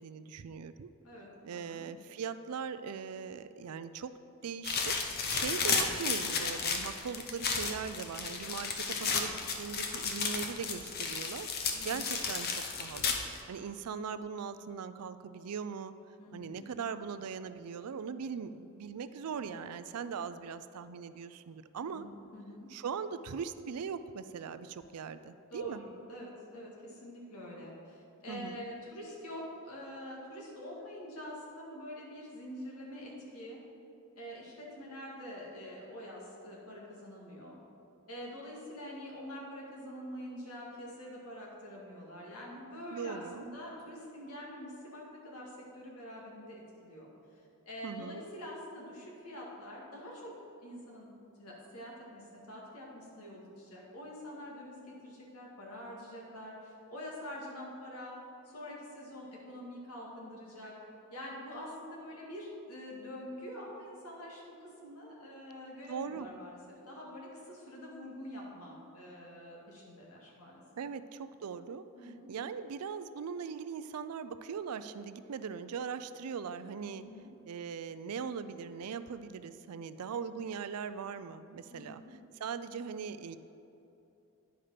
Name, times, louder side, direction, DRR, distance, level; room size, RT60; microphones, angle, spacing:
voice 1, 0.0-0.9 1.4-4.1 4.4-15.9 16.3-22.1 22.7-25.8 28.3-28.6 42.9-43.5 47.8-48.2 65.9-66.3 70.8-77.0 77.5-82.0 82.4-83.4, right 6 dB, 90° right, 13 dB, 0.4 m, -40 dB
voice 2, 1.0-1.8 11.7-12.2 16.2-16.6 21.8-22.7 25.5-33.6 34.2-37.6 38.1-47.1 47.7-50.3 50.6-51.1 51.4-58.2 58.4-60.8 61.1-66.6 66.9-70.6 72.0-72.3 76.9-77.3 81.7-82.1, equal, 85° left, -3 dB, 2.1 m, -46 dB
sound 1, 4.6-13.4, left 5 dB, 45° left, 0.8 m, -33 dB
10.0 x 5.1 x 5.7 m, 2.8 s
head